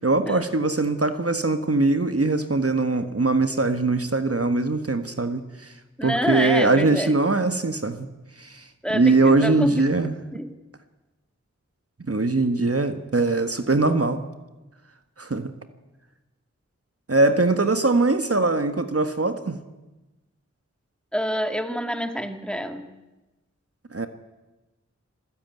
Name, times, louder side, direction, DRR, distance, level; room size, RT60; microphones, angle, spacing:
voice 1, 0.0-5.7 6.0-8.1 8.4-8.6 8.9-10.1 12.1-14.2 15.2-15.5 17.1-19.6 23.9-24.1, right 3 dB, 55° right, 9 dB, 1.5 m, -22 dB
voice 2, 6.0-7.1 8.8-10.5 21.1-22.9, equal, 5° left, 7 dB, 2.2 m, -27 dB
27.5 x 15.5 x 9.4 m, 1.1 s
wide cardioid pair, 55°, 29 cm